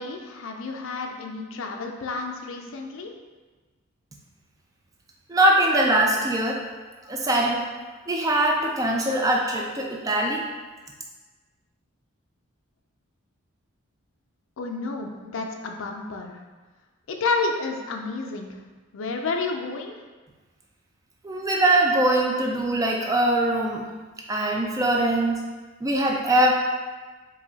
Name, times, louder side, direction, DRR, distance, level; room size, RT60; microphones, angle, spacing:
voice 1, 0.0-3.1 14.6-16.4 17.1-18.5 18.9-20.0, left 3 dB, 65° left, 2 dB, 0.4 m, -30 dB
voice 2, 5.3-6.6 7.1-7.6 8.1-10.5 21.2-23.8 24.3-25.4 25.8-26.5, right 1 dB, 15° right, -1 dB, 0.3 m, -22 dB
4.7 x 2.7 x 2.8 m, 1.3 s
head